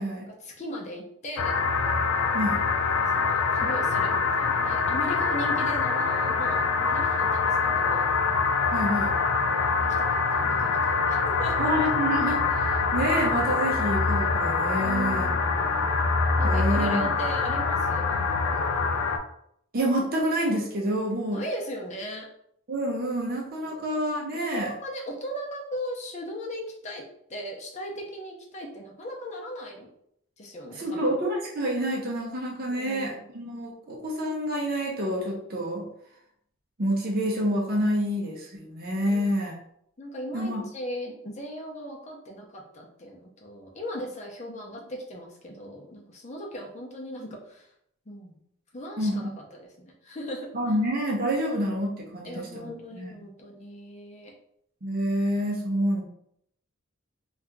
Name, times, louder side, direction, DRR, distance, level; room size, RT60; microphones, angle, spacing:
voice 1, 0.3-1.5 2.9-8.1 10.0-11.7 14.8-15.9 16.4-18.7 21.0-22.3 23.6-23.8 24.3-27.0 27.3-29.9 30.4-31.1 32.7-33.3 39.1-39.3 40.0-47.7 48.1-48.3 48.7-50.5 52.2-54.3, equal, 35° left, -1 dB, 0.6 m, -38 dB
sound 1, 1.4-19.2, left 4 dB, 75° left, 0.4 m, -25 dB
voice 2, 8.7-9.1 11.6-15.3 16.4-17.1 19.7-21.4 22.7-24.7 30.8-35.9 36.8-39.6 40.3-40.6 49.0-49.3 50.5-53.1 54.8-56.1, equal, 45° right, -1 dB, 0.6 m, -28 dB
2.8 x 2.4 x 3.5 m, 0.71 s
head